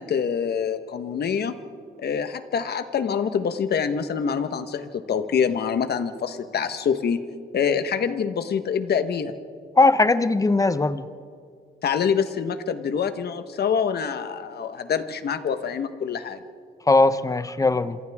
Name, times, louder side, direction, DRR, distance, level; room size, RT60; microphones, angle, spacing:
voice 1, 0.0-1.5 2.0-7.2 7.5-9.3 11.8-16.4, left 7 dB, 60° left, 9 dB, 1.3 m, -25 dB
voice 2, 9.8-11.1 16.9-18.0, left 3 dB, 20° left, 13 dB, 0.8 m, -19 dB
28.0 x 27.0 x 3.6 m, 2.3 s
cardioid pair, 105°, 19 cm